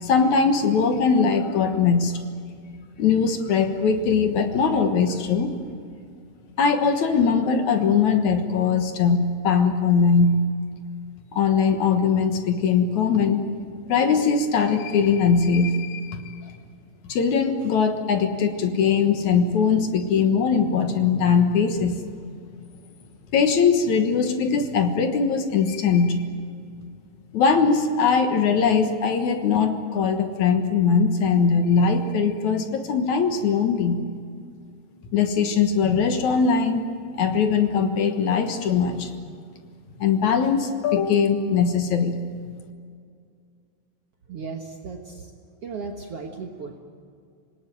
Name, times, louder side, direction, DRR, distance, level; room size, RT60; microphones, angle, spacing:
voice 1, 0.0-2.2 3.0-5.6 6.6-10.4 11.3-13.4 13.9-16.4 17.1-22.0 23.3-26.2 27.3-34.0 35.1-36.9 37.2-39.3 40.0-42.2, left 5 dB, 60° left, 6 dB, 2.1 m, -21 dB
voice 2, 44.3-45.3 45.6-46.8, right 4 dB, 65° right, 2 dB, 1.4 m, -36 dB
26.0 x 19.0 x 9.2 m, 2.2 s
omnidirectional pair, 4.8 m